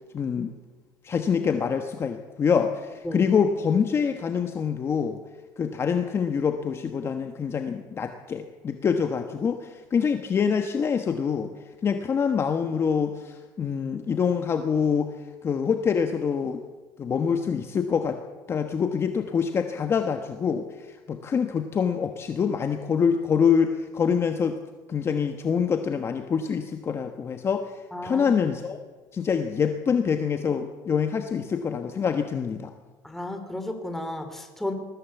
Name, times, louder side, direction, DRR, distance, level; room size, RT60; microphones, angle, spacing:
voice 1, 0.1-0.5 1.0-5.2 5.6-11.5 11.8-15.1 15.4-16.6 17.0-18.2 18.5-24.6 24.9-27.7 28.0-28.8 29.1-32.7, left 6 dB, 30° left, 6 dB, 1.2 m, -25 dB
voice 2, 27.9-28.3 33.0-34.7, left 1 dB, 5° left, 6 dB, 3.2 m, -33 dB
20.5 x 15.5 x 8.2 m, 1.3 s
cardioid pair, 140°, 9 cm